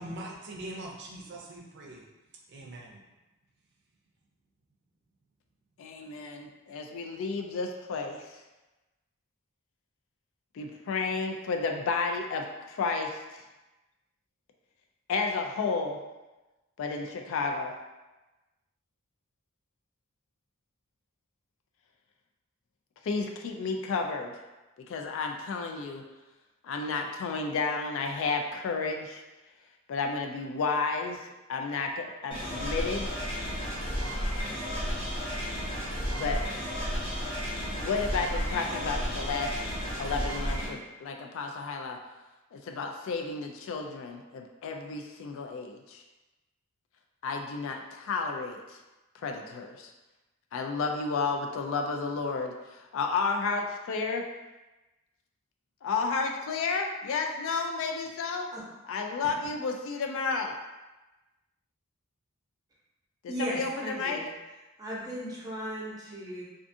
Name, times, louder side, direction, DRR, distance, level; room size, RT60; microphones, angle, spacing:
voice 1, 0.0-2.0 2.5-3.0, right 1 dB, 55° right, -1 dB, 0.5 m, -42 dB
voice 2, 5.8-8.2 10.5-13.2 15.1-16.0 16.8-17.7 23.0-24.3 24.9-26.0 26.6-29.2 29.9-33.1 36.1-36.4 37.7-39.5 40.0-42.0 42.5-46.0 47.2-48.8 49.2-49.9 50.5-54.2 55.8-58.5 58.8-60.5 63.4-64.2, left 4 dB, 65° left, 3 dB, 0.3 m, -32 dB
sound 1, 32.3-40.7, equal, 25° left, 0.8 m, -32 dB
voice 3, 63.3-64.3 64.8-66.4, equal, 20° right, -6 dB, 0.7 m, -36 dB
2.4 x 2.4 x 2.6 m, 1.1 s
head